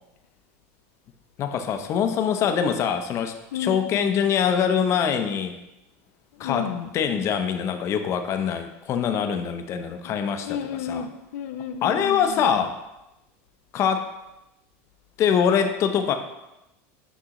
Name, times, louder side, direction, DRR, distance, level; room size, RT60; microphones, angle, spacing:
voice 1, 1.4-5.5 6.4-10.6 10.9-11.0 11.8-12.8 13.7-14.1 15.2-16.1, left 7 dB, 40° left, 7 dB, 0.6 m, -24 dB
voice 2, 3.5-4.1 6.3-6.9 10.0-12.6, left 8 dB, 85° left, 7 dB, 0.4 m, -33 dB
6.1 x 5.4 x 3.0 m, 0.94 s
supercardioid pair, 130°, 7 cm